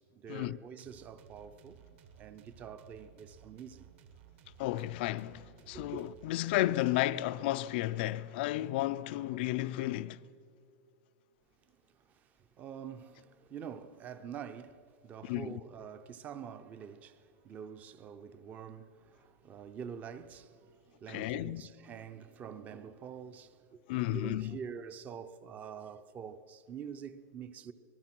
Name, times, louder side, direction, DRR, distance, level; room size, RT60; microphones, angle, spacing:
voice 1, 0.0-1.8 2.2-3.9 5.7-6.0 12.0-27.7, right 7 dB, 20° right, 0.6 m, -46 dB
sound 1, 0.8-7.5, right 8 dB, 50° right, 1.4 m, -58 dB
voice 2, 4.6-10.2 15.2-15.6 21.1-21.6 23.9-24.6, left 16 dB, 40° left, 0.4 m, -33 dB
26.0 x 20.0 x 6.0 m
supercardioid pair, 175°, 8 cm